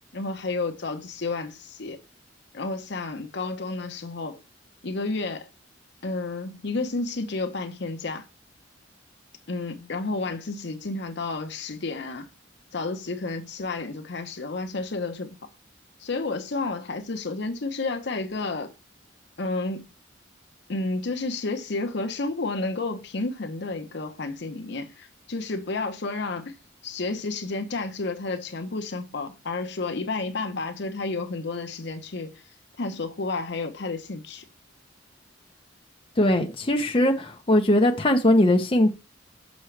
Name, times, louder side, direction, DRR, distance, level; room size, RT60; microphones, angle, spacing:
voice 1, 0.1-2.0 2.5-4.4 4.8-5.5 6.0-8.2 9.5-12.3 12.7-15.4 16.0-18.7 19.4-19.9 20.7-26.5 26.8-32.4 32.8-34.4, left 3 dB, 60° left, 0.8 m, -31 dB
voice 2, 36.2-38.9, left 1 dB, 30° left, 0.8 m, -20 dB
6.2 x 6.1 x 3.2 m
head